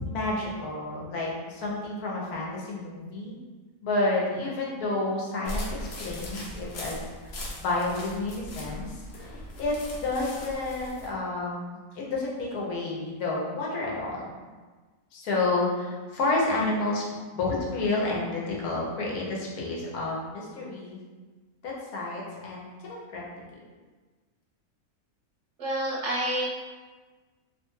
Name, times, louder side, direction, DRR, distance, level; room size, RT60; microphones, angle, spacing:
voice 1, 0.0-3.4 3.8-7.0 7.2-14.3 15.1-17.0 17.3-21.0 21.6-23.2, left 2 dB, 85° left, -4 dB, 1.2 m, -30 dB
sound 1, 5.4-11.1, left 1 dB, 60° left, 0.7 m, -39 dB
voice 2, 25.6-26.5, right 1 dB, 65° right, -5 dB, 0.8 m, -28 dB
2.8 x 2.2 x 3.0 m, 1.4 s
omnidirectional pair, 1.6 m